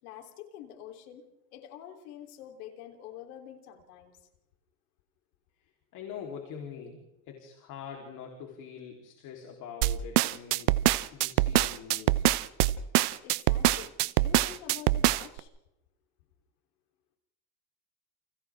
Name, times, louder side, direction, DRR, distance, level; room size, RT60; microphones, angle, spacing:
voice 1, 0.0-1.2 1.5-4.2 13.2-15.5, left 10 dB, 70° left, 4 dB, 3.8 m, -47 dB
voice 2, 5.9-10.7 11.1-12.3, left 7 dB, 40° left, 1 dB, 3.8 m, -44 dB
sound 1, 9.8-15.4, right 17 dB, 75° right, 1.0 m, -24 dB
29.5 x 29.5 x 3.7 m, 0.91 s
supercardioid pair, 160°, 47 cm